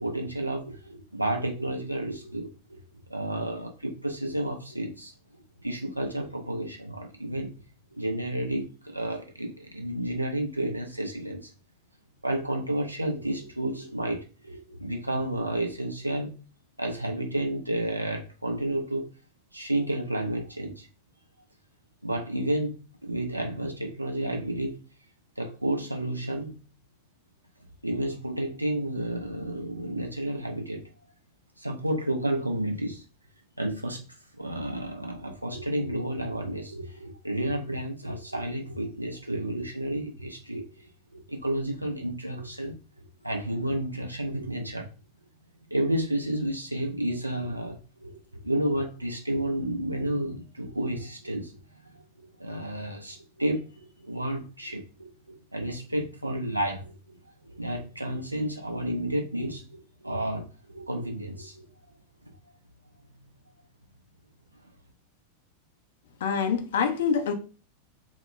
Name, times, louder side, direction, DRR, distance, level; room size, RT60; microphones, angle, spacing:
voice 1, 0.0-2.8 3.1-5.1 5.6-7.5 7.9-11.5 12.2-16.3 16.8-19.1 19.5-20.9 22.0-22.8 23.0-24.8 25.4-26.5 27.8-30.8 31.6-33.0 33.6-34.0 34.4-42.8 43.2-44.9 45.7-51.5 51.8-52.0 52.4-61.7, right 1 dB, 85° right, 0.5 m, -31 dB
voice 2, 66.2-67.3, left 6 dB, 60° left, 0.4 m, -25 dB
2.2 x 2.1 x 3.0 m
figure-of-eight pair, 90°, 0 cm